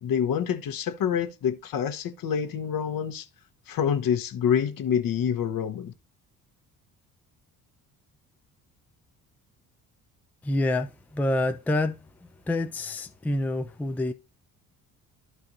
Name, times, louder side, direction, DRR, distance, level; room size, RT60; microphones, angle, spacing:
voice 1, 0.0-3.3 3.7-5.9, left 8 dB, 45° left, 1.1 m, -27 dB
voice 2, 10.4-12.0 12.5-14.1, left 1 dB, 5° left, 0.6 m, -27 dB
12.5 x 4.5 x 2.7 m
figure-of-eight pair, 45°, 46 cm